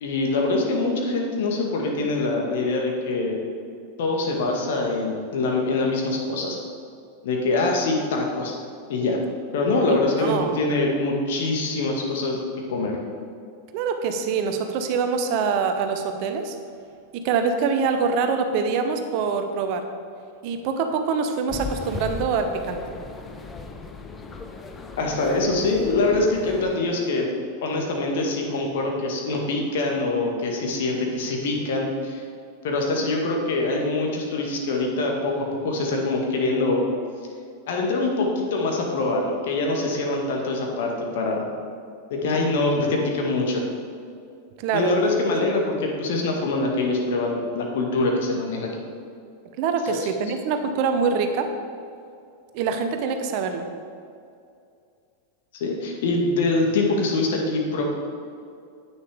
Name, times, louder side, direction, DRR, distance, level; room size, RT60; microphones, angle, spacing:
voice 1, 0.0-3.4 4.0-6.6 7.2-8.5 8.9-9.2 9.5-12.4 12.7-13.0 25.0-27.3 27.6-32.2 32.6-36.8 37.7-41.5 42.1-43.6 44.7-48.8 49.8-50.0 55.6-57.8, left 2 dB, 55° left, 0 dB, 1.8 m, -24 dB
voice 2, 9.9-10.6 13.7-16.6 17.1-19.9 20.4-22.8 44.6-44.9 49.6-51.5 52.5-53.7, right 5 dB, 45° right, 7 dB, 0.8 m, -24 dB
sound 1, 21.5-26.8, left 4 dB, 15° left, 0.7 m, -37 dB
9.9 x 9.0 x 3.6 m, 2.4 s
figure-of-eight pair, 90°, 0 cm